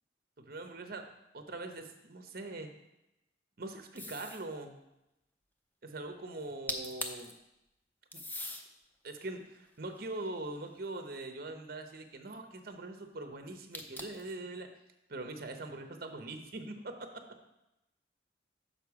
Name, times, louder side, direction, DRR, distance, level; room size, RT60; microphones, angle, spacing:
voice 1, 0.4-1.1 1.3-2.7 3.6-4.8 5.8-7.3 8.1-8.2 9.0-14.7 15.1-17.0, right 2 dB, 55° right, 6 dB, 0.8 m, -42 dB
sound 1, 4.0-4.5 6.4-6.5 6.7-7.3 8.1-8.6 9.3-10.8 13.7-14.3, left 1 dB, 10° left, 0.5 m, -41 dB
6.7 x 5.5 x 4.7 m, 0.90 s
head